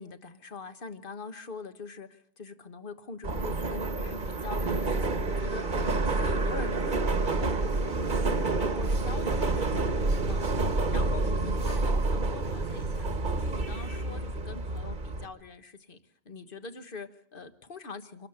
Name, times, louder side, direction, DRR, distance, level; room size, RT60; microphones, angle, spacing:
voice 1, 0.0-9.7 10.3-10.4 10.9-13.1 13.3-16.0 16.2-18.3, left 4 dB, 55° left, 10 dB, 1.5 m, -43 dB
Subway metro underground, 3.2-15.3, right 2 dB, 50° right, 1.4 m, -28 dB
26.0 x 12.5 x 8.0 m, 0.64 s
omnidirectional pair, 1.1 m